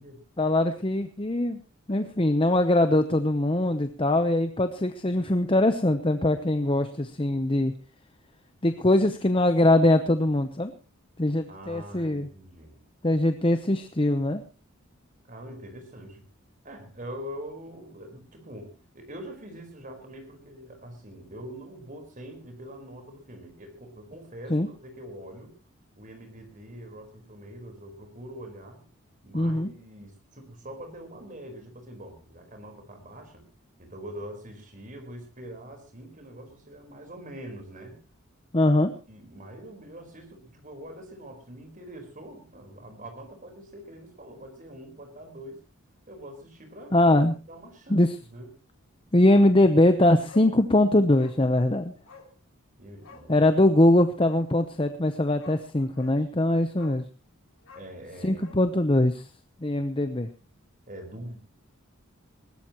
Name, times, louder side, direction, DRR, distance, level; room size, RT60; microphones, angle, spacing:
voice 1, 0.4-1.6 1.9-7.7 8.6-10.7 11.2-12.3 13.0-14.4 24.5-24.7 29.3-29.7 38.5-38.9 46.9-47.3 47.9-48.1 49.1-51.9 53.3-57.0 58.2-59.2 59.6-60.3, left 1 dB, 25° left, 9 dB, 0.8 m, -22 dB
voice 2, 11.5-12.8 15.2-16.2 16.6-25.5 26.0-28.8 29.2-33.4 33.8-38.0 39.1-45.6 46.1-46.9 47.5-48.5 52.8-53.5 55.7-56.5 57.7-58.4 60.9-61.4, equal, 35° right, 6 dB, 4.4 m, -44 dB
Bark, 49.3-49.5 49.8-49.9 50.3-50.5 51.2-51.4 52.1-52.3 53.0-53.3 54.9-55.0 55.4-55.6 56.0-56.2 56.8-57.1 57.6-58.6 58.9-59.0, left 4 dB, 70° left, 2.8 m, -49 dB
20.5 x 17.5 x 3.0 m, 0.33 s
head